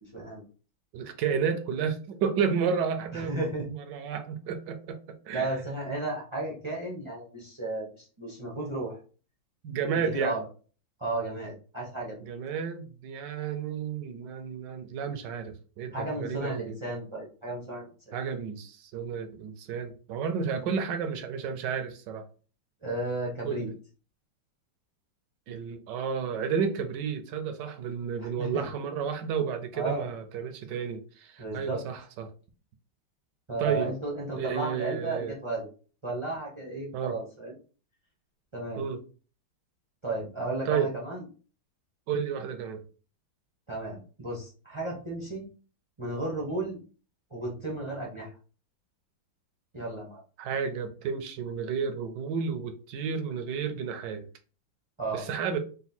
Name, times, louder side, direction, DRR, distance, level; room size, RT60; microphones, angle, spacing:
voice 1, 0.0-0.4 3.1-3.7 5.3-9.0 9.9-10.4 11.0-12.2 15.9-18.2 22.8-23.7 28.2-28.6 29.7-30.1 31.4-31.8 33.5-35.7 36.0-37.5 38.5-38.9 40.0-41.2 43.7-45.5 46.0-46.8 47.3-48.3 49.7-50.2 55.0-55.3, right 2 dB, 45° right, -4 dB, 0.3 m, -34 dB
voice 2, 0.9-5.0 5.3-5.5 9.6-10.4 12.3-16.7 18.1-22.3 23.4-23.7 25.5-32.3 33.6-33.9 34.4-35.3 36.9-37.2 38.8-39.0 40.7-40.9 42.1-42.8 50.4-54.3 55.1-55.6, right 6 dB, 70° right, 8 dB, 1.0 m, -31 dB
4.0 x 2.3 x 4.1 m, 0.38 s
omnidirectional pair, 2.3 m